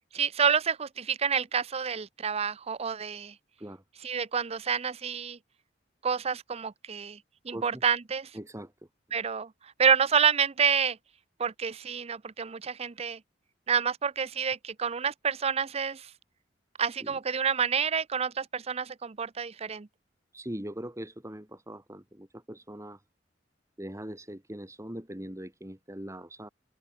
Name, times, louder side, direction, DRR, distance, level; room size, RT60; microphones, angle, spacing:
voice 1, 0.1-3.3 4.0-5.4 6.0-7.2 7.4-8.3 9.1-9.5 9.8-11.0 11.4-13.2 13.7-16.1 16.8-19.9, right 6 dB, 35° right, 0.6 m, -28 dB
voice 2, 7.5-7.8 8.3-8.7 17.0-17.2 20.3-23.0 23.8-26.5, right 1 dB, 15° right, 2.8 m, -41 dB
head